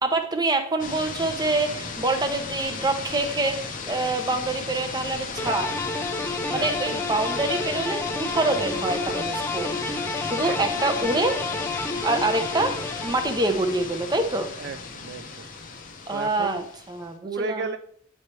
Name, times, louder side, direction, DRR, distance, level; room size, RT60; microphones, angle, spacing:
voice 1, 0.0-5.8 6.5-9.8 10.2-11.4 12.0-12.8 13.0-14.5 16.1-17.6, right 2 dB, 20° right, 6 dB, 0.7 m, -26 dB
sound 1, 0.8-17.1, left 4 dB, 40° left, 0.8 m, -35 dB
sound 2, 5.4-13.7, left 3 dB, 15° left, 0.5 m, -30 dB
voice 2, 14.6-15.5 16.1-16.6 17.2-17.8, right 4 dB, 55° right, 9 dB, 0.3 m, -33 dB
9.4 x 3.3 x 4.3 m, 0.65 s
head